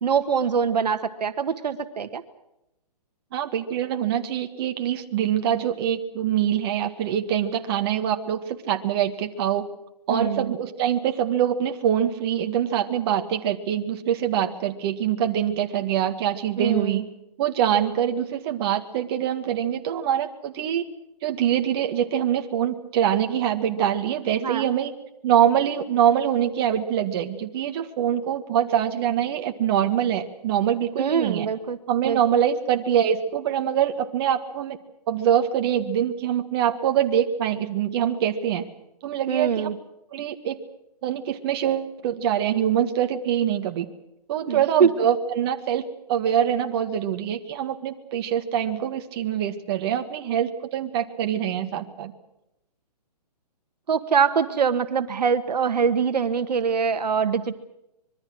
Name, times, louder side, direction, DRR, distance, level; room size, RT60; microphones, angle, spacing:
voice 1, 0.0-2.2 10.1-10.5 16.6-17.0 24.4-24.7 31.0-31.8 32.0-32.2 39.3-39.7 44.5-44.9 53.9-57.6, right 6 dB, 75° right, 10 dB, 1.6 m, -23 dB
voice 2, 3.3-9.6 10.1-17.0 17.4-20.8 21.2-24.9 25.2-31.5 31.9-34.8 35.1-38.7 39.0-39.7 40.1-40.6 41.0-43.9 44.3-52.1, right 9 dB, 35° right, 5 dB, 1.8 m, -24 dB
25.0 x 22.5 x 6.3 m, 0.87 s
hypercardioid pair, 150°, 21 cm